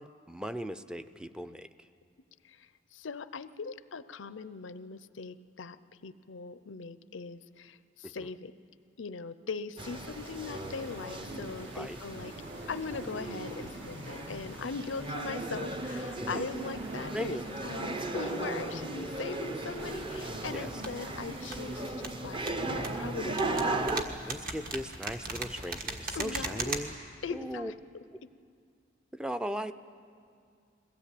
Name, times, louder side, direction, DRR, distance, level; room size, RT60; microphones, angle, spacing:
voice 1, 0.0-1.7 8.2-8.3 11.7-12.0 16.2-16.4 17.1-17.5 20.5-20.7 23.2-23.3 24.3-26.9 27.3-27.7 29.1-29.7, equal, 5° right, 10 dB, 0.5 m, -38 dB
voice 2, 2.5-5.8 6.0-8.5 9.0-12.3 12.7-24.1 26.1-26.8 27.2-28.3, left 4 dB, 90° left, 14 dB, 0.6 m, -40 dB
sound 1, 9.8-24.0, right 2 dB, 30° right, 0.8 m, -36 dB
sound 2, 9.8-21.9, right 1 dB, 70° right, 2.5 m, -48 dB
sound 3, 19.8-26.8, right 3 dB, 50° right, 1.7 m, -40 dB
22.0 x 16.5 x 8.5 m, 2.3 s
head